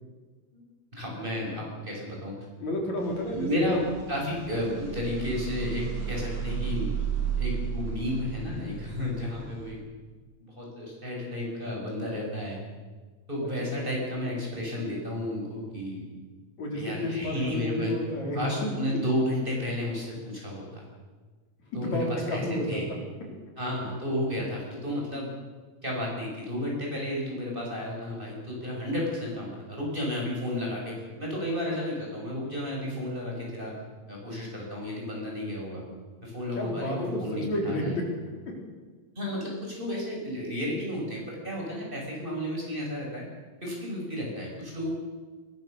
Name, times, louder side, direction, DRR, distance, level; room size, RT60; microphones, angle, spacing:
voice 1, 0.9-2.4 3.3-9.8 10.4-12.6 13.3-16.1 16.7-17.9 18.4-20.8 21.7-22.4 22.7-22.9 23.6-25.3 25.8-33.7 34.1-35.8 36.2-37.9 39.2-43.2 43.6-44.9, left 1 dB, 15° right, -2 dB, 7.1 m, -32 dB
voice 2, 2.6-3.7 13.4-13.5 13.8-13.9 16.6-19.0 21.7-23.0 36.6-38.6, left 1 dB, 70° left, 0 dB, 5.5 m, -31 dB
sound 1, 3.0-9.7, right 7 dB, 80° right, 6.4 m, -34 dB
22.0 x 21.5 x 6.8 m, 1.4 s
omnidirectional pair, 3.3 m